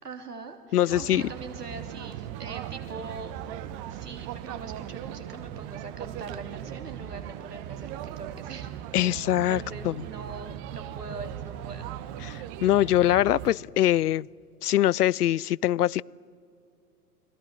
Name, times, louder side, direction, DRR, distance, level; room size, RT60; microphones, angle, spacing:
voice 1, 0.0-3.3 3.9-11.9, right 4 dB, 75° right, 5 dB, 3.3 m, -42 dB
voice 2, 0.7-1.2 8.9-9.9 12.2-14.3 14.6-16.0, left 13 dB, 75° left, 27 dB, 0.5 m, -23 dB
sound 1, 0.9-13.5, right 11 dB, 30° right, 1.0 m, -38 dB
29.5 x 22.0 x 7.5 m, 2.4 s
figure-of-eight pair, 100°, 47 cm